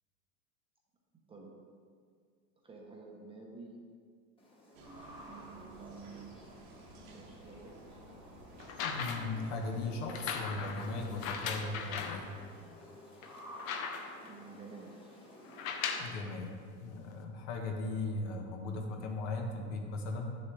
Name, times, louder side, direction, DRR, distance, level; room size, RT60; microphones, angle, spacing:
voice 1, 2.6-3.7 5.2-6.6 6.9-7.7 14.2-14.9, right 4 dB, 15° right, -2 dB, 0.9 m, -51 dB
sound 1, 4.4-16.2, left 1 dB, 15° left, 1.4 m, -53 dB
sound 2, 4.7-12.2, right 2 dB, 75° right, 1.6 m, -53 dB
sound 3, 8.6-9.4 10.1-12.2 12.8-12.9 13.2-14.3 15.5-16.2 17.1-17.2, left 6 dB, 80° left, 1.0 m, -38 dB
voice 2, 8.8-12.3 16.0-20.4, left 3 dB, 60° left, 2 dB, 1.3 m, -38 dB
9.6 x 7.0 x 3.3 m, 2.1 s
supercardioid pair, 150°, 41 cm